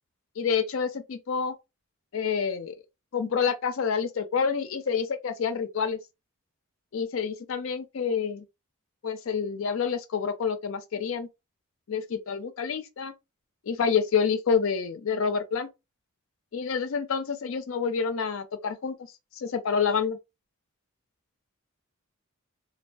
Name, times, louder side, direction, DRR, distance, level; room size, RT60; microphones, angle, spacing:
voice 1, 0.4-1.5 2.1-2.7 3.1-6.0 6.9-8.4 9.0-11.3 11.9-13.1 13.7-15.7 16.5-19.0 19.4-20.2, left 6 dB, 65° left, 0.4 m, -28 dB
2.3 x 2.3 x 2.5 m
head